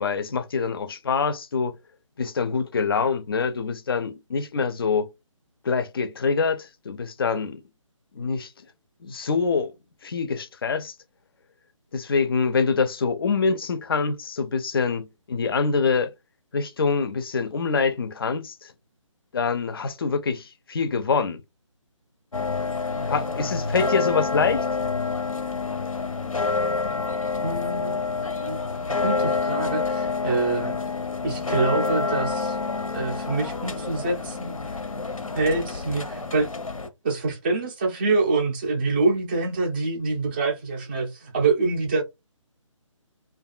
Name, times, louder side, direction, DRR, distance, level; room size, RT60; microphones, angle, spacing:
voice 1, 0.0-1.8 2.2-5.1 5.6-7.6 8.1-8.5 9.0-9.7 10.0-10.9 11.9-16.1 16.5-18.7 19.3-21.4 23.1-24.6, left 5 dB, 45° left, 0.4 m, -25 dB
sound 1, 22.3-36.9, left 4 dB, 85° left, 0.6 m, -28 dB
voice 2, 27.4-28.6 28.9-30.8 31.2-32.6 32.9-34.6 35.3-36.5 37.0-42.0, right 3 dB, 20° right, 0.4 m, -26 dB
2.5 x 2.3 x 2.3 m
figure-of-eight pair, 150°, 17 cm